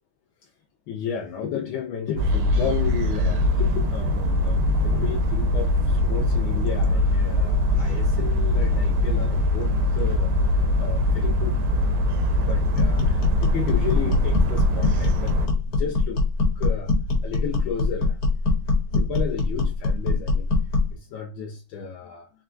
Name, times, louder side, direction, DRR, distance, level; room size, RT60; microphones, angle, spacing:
voice 1, 0.9-11.7 12.2-15.4 15.7-16.9 17.2-20.5 20.8-22.3, left 7 dB, 75° left, 1.3 m, -33 dB
sound 1, 2.2-15.5, left 1 dB, 80° right, 1.5 m, -22 dB
sound 2, 12.7-21.0, left 3 dB, 50° left, 1.6 m, -23 dB
4.5 x 2.2 x 3.7 m
omnidirectional pair, 2.4 m